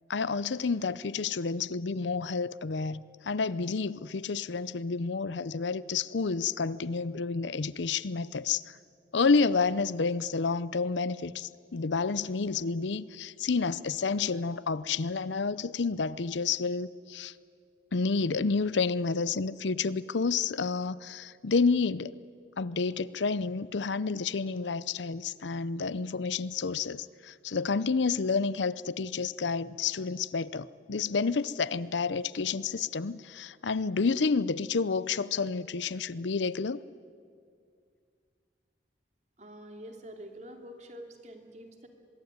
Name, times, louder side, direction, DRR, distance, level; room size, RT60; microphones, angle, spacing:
voice 1, 0.1-8.8 9.1-17.3 17.9-22.2 22.6-36.8, left 4 dB, 80° left, 18 dB, 0.6 m, -30 dB
voice 2, 39.4-41.9, equal, 40° right, 4 dB, 2.8 m, -46 dB
24.0 x 22.0 x 9.5 m, 2.2 s
head